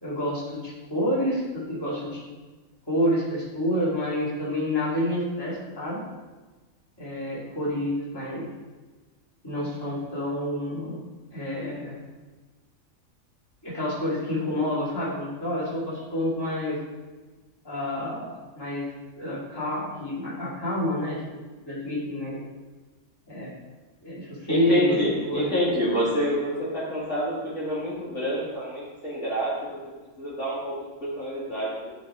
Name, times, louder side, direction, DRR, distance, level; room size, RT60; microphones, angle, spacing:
voice 1, 0.0-2.2 2.9-6.0 7.0-8.5 9.4-11.0 11.3-12.0 13.6-16.8 17.6-18.9 19.2-21.2 21.6-22.4 23.3-23.5 24.0-25.0 25.3-25.5, equal, 15° left, -8 dB, 2.6 m, -28 dB
voice 2, 24.5-29.5 30.2-30.7 31.0-31.7, equal, 55° left, -8 dB, 3.2 m, -27 dB
12.0 x 4.2 x 4.8 m, 1.3 s
omnidirectional pair, 1.5 m